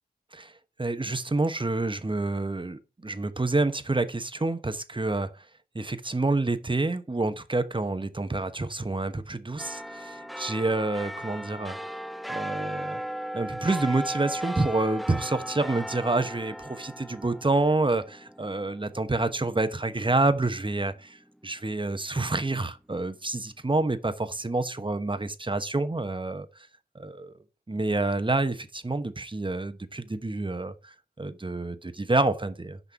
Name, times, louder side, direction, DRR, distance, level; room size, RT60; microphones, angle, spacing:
voice 1, 0.3-5.5 5.7-11.8 12.3-13.0 13.3-26.7 26.9-32.8, right 2 dB, 30° right, 1.0 m, -28 dB
sound 1, 9.6-20.4 20.8-20.9, right 1 dB, ahead, 0.3 m, -37 dB
6.2 x 5.3 x 6.9 m
cardioid pair, 45°, 18 cm